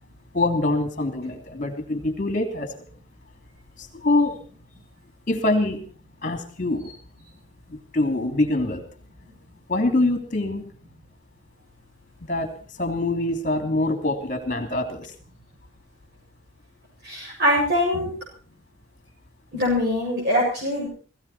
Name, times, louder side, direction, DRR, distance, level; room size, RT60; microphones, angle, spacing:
voice 1, 0.3-2.7 3.8-4.4 5.3-5.9 6.2-6.9 7.7-8.8 9.7-10.7 12.2-15.1, left 2 dB, 35° left, 6 dB, 3.0 m, -24 dB
voice 2, 17.0-18.1 19.5-20.9, left 1 dB, 50° right, -4 dB, 7.6 m, -23 dB
18.0 x 17.0 x 4.4 m, 0.41 s
head